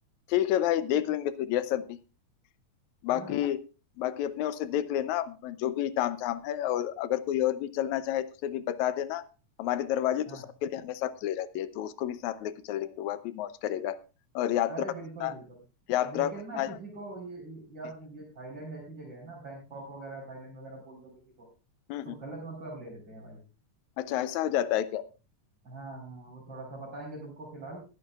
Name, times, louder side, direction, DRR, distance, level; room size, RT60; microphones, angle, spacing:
voice 1, 0.3-2.0 3.0-3.6 4.0-9.2 9.6-14.0 14.4-14.7 15.2-15.3 15.9-16.7 21.9-22.2 24.0-25.0, left 12 dB, 80° left, 14 dB, 2.0 m, -30 dB
voice 2, 14.7-15.6 16.0-21.1 22.0-23.4 25.6-27.8, right 2 dB, 35° right, -6 dB, 4.6 m, -42 dB
21.5 x 9.8 x 2.3 m, 0.32 s
omnidirectional pair, 3.4 m